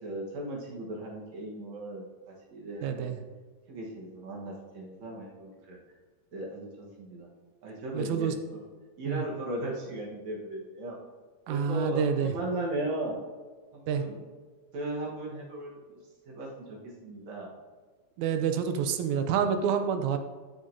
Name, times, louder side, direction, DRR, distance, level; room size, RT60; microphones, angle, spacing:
voice 1, 0.0-3.1 3.7-5.8 6.3-7.3 7.6-8.6 9.0-11.0 11.5-13.2 13.7-14.2 14.7-16.0 16.3-17.5, right 1 dB, 70° right, -3 dB, 2.6 m, -37 dB
voice 2, 2.8-3.2 7.9-8.3 9.1-9.2 11.5-12.3 13.9-14.0 18.2-20.2, right 7 dB, 85° right, 7 dB, 2.0 m, -28 dB
12.0 x 6.4 x 2.8 m, 1.5 s
omnidirectional pair, 3.3 m